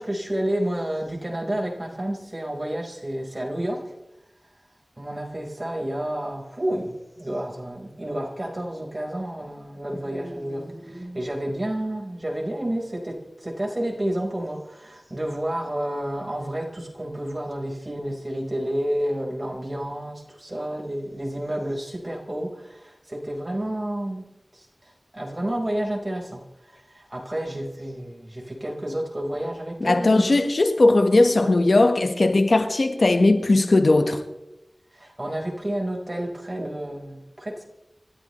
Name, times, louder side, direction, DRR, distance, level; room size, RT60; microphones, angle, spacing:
voice 1, 0.0-3.9 5.0-24.2 24.5-30.2 31.4-31.5 34.9-37.6, right 1 dB, 35° right, 4.9 m, -30 dB
voice 2, 29.8-34.2, left 2 dB, 75° left, 1.5 m, -18 dB
27.0 x 13.5 x 3.3 m
wide cardioid pair, 50°, 0 cm